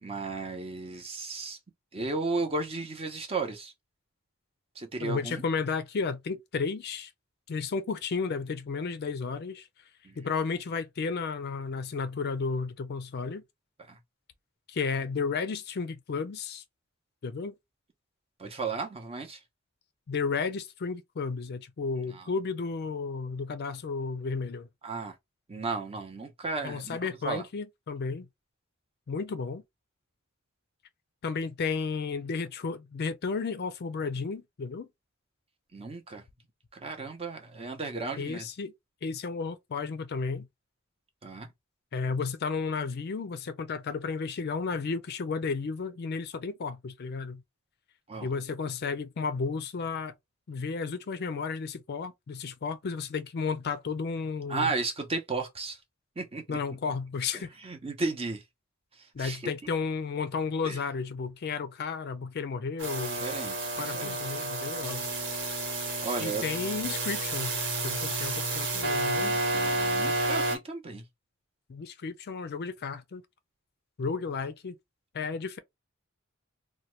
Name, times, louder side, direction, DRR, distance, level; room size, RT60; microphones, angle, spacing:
voice 1, 0.0-1.6 1.9-3.7 4.8-5.4 10.0-10.2 13.9-14.0 18.4-19.4 24.8-25.1 25.5-27.0 27.2-27.4 35.7-36.2 36.7-38.5 41.2-41.5 48.1-48.3 54.5-55.8 56.2-56.6 57.3-58.4 59.2-59.5 60.6-60.8 63.1-64.5 66.0-66.4 69.2-71.0, right 3 dB, 30° right, 0.7 m, -34 dB
voice 2, 5.0-7.1 7.5-9.7 10.2-13.4 14.7-16.6 17.2-17.5 20.1-24.7 26.6-28.3 29.1-29.6 31.2-34.9 38.2-38.7 39.0-40.5 41.9-47.4 48.2-50.1 50.5-54.7 56.5-57.5 59.1-63.3 63.8-65.1 66.2-67.6 67.8-69.3 71.7-73.2 74.0-74.8 75.1-75.6, left 5 dB, 50° left, 0.4 m, -33 dB
sound 1, 62.8-70.6, right 2 dB, 60° right, 1.2 m, -30 dB
2.8 x 2.2 x 3.1 m
head